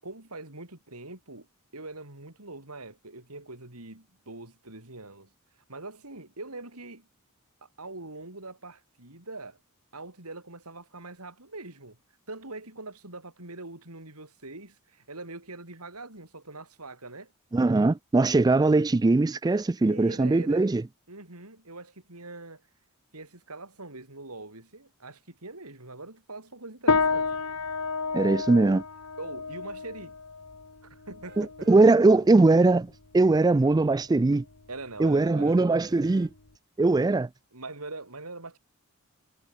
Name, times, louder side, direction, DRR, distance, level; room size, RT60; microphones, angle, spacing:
voice 1, 0.0-1.5 1.7-5.3 5.7-7.1 7.6-9.6 9.9-12.0 12.3-17.3 19.8-20.7 21.1-22.6 23.1-27.4 29.2-30.2 30.8-31.7 34.7-35.7 37.5-38.6, right 2 dB, 85° right, 5.8 m, -43 dB
voice 2, 17.5-20.8 28.1-28.8 31.4-34.4 35.0-36.3 36.8-37.3, right 3 dB, 20° right, 0.3 m, -21 dB
sound 1, 26.9-36.5, left 4 dB, 80° left, 1.8 m, -32 dB
sound 2, 31.2-31.9 32.5-32.6 35.4-36.3 36.9-37.0, right 4 dB, 50° right, 7.8 m, -55 dB
head